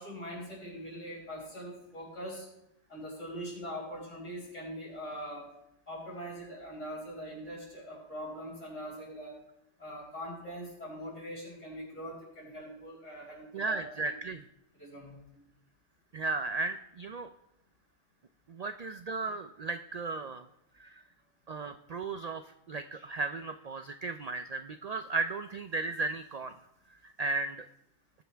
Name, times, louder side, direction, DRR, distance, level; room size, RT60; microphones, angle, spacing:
voice 1, 0.0-2.5 2.9-5.5 5.9-9.3 9.8-14.1 14.7-15.4, equal, 70° left, -6 dB, 5.6 m, -42 dB
voice 2, 13.5-14.4 16.1-17.3 18.5-20.5 20.8-21.0 21.5-26.5 27.0-27.6, right 3 dB, 85° right, 9 dB, 0.3 m, -35 dB
19.5 x 7.0 x 3.4 m, 0.83 s
omnidirectional pair, 1.3 m